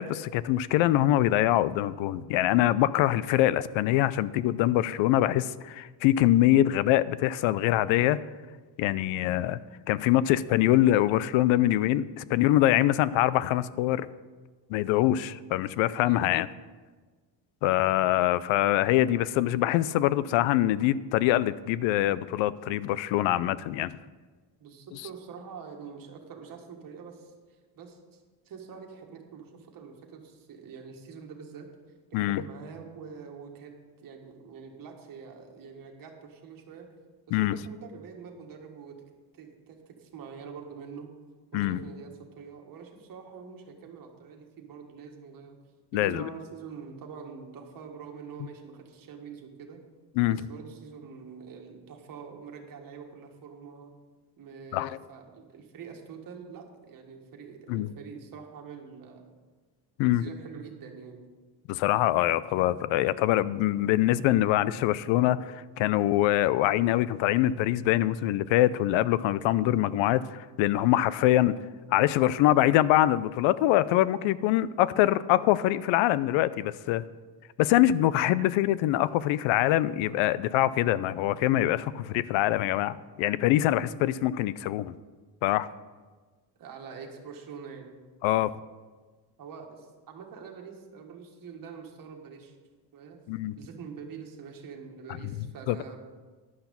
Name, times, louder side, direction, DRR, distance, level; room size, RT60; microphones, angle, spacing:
voice 1, 0.0-8.2 8.8-9.6 9.9-14.1 14.7-16.5 17.6-24.0 32.1-32.4 37.3-37.6 41.5-41.8 45.9-46.3 50.2-50.4 54.7-55.0 57.7-57.9 60.0-60.2 61.7-71.5 71.9-77.0 77.6-84.9 85.4-85.7 88.2-88.5 93.3-93.5 95.7-95.8, left 14 dB, 85° left, 18 dB, 0.6 m, -24 dB
voice 2, 24.6-27.3 27.7-31.7 32.1-36.9 37.3-39.0 39.3-41.1 41.5-45.6 45.9-49.8 50.3-53.9 54.4-59.2 60.0-61.3 83.7-84.0 86.6-87.9 89.4-92.5 92.9-93.2 93.5-96.0, right 6 dB, 50° right, 2 dB, 1.8 m, -45 dB
11.0 x 5.9 x 7.0 m, 1.3 s
cardioid pair, 130°, 45 cm